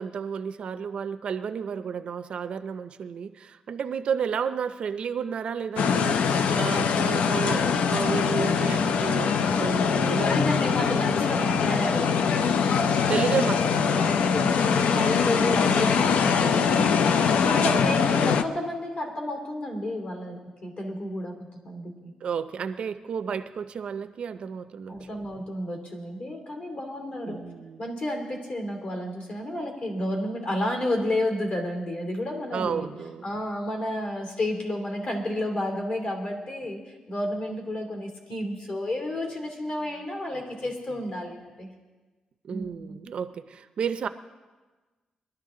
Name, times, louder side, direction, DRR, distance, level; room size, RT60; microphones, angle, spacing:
voice 1, 0.0-10.7 13.1-14.1 17.7-18.0 22.2-25.1 27.2-27.8 32.5-33.3 42.4-44.1, right 7 dB, 55° right, 11 dB, 0.5 m, -32 dB
sound 1, 5.8-18.4, left 6 dB, 70° left, 0.5 m, -23 dB
voice 2, 10.1-12.4 14.0-22.1 24.9-27.5 27.8-32.9 33.2-36.8 37.1-41.7 42.5-43.0, left 1 dB, 50° left, 2 dB, 2.7 m, -31 dB
21.5 x 12.0 x 3.7 m, 1.3 s
wide cardioid pair, 160°, 2 cm